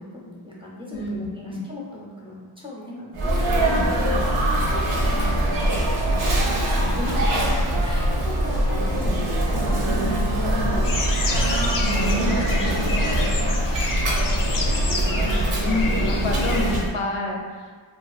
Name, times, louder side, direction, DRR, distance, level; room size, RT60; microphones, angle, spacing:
voice 1, 0.0-10.2 10.5-15.0, left 1 dB, 10° right, -5 dB, 0.5 m, -38 dB
Sneeze, 3.1-16.9, right 1 dB, 90° right, 0.7 m, -22 dB
sound 1, 10.8-16.8, left 3 dB, 45° left, 0.4 m, -30 dB
voice 2, 11.8-12.4 15.6-17.7, left 2 dB, 85° left, 0 dB, 0.6 m, -28 dB
2.5 x 2.4 x 2.3 m, 1.5 s
cardioid pair, 70°, 49 cm